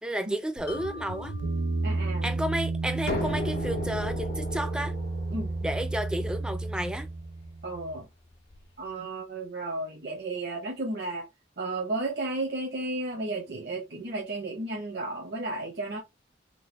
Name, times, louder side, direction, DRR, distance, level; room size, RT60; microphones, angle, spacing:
voice 1, 0.0-1.3 2.2-5.0 5.6-7.1, right 1 dB, 5° right, 0.4 m, -32 dB
sound 1, 0.6-8.0, right 3 dB, 85° right, 0.4 m, -32 dB
Mallet percussion, 0.7-4.0, left 5 dB, 55° left, 0.6 m, -46 dB
voice 2, 1.8-2.3 5.3-5.5 7.6-8.1 8.8-11.3 11.6-16.0, right 2 dB, 60° right, 0.8 m, -33 dB
sound 2, 3.1-8.7, left 2 dB, 85° left, 1.3 m, -37 dB
3.8 x 2.1 x 3.0 m
head